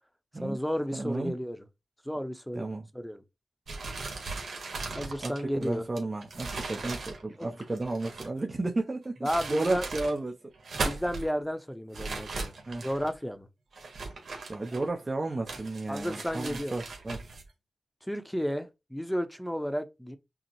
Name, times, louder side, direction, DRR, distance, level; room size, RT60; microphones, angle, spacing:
voice 1, 0.4-1.6 2.0-2.6 2.9-3.2 5.0-5.8 7.4-7.5 9.2-9.9 10.8-12.6 12.8-13.5 15.9-16.8 18.0-20.2, equal, 5° left, 0.7 m, -32 dB
voice 2, 0.9-1.4 2.6-2.9 5.2-5.3 5.6-10.3 10.7-10.9 12.7-12.9 14.5-17.2, right 2 dB, 40° right, 0.7 m, -33 dB
sound 1, 3.7-8.4 9.0-10.2 10.5-11.3 11.9-13.1 13.7-15.0 15.5-17.4, right 3 dB, 75° right, 1.2 m, -38 dB
5.7 x 2.0 x 3.0 m
cardioid pair, 45°, 0 cm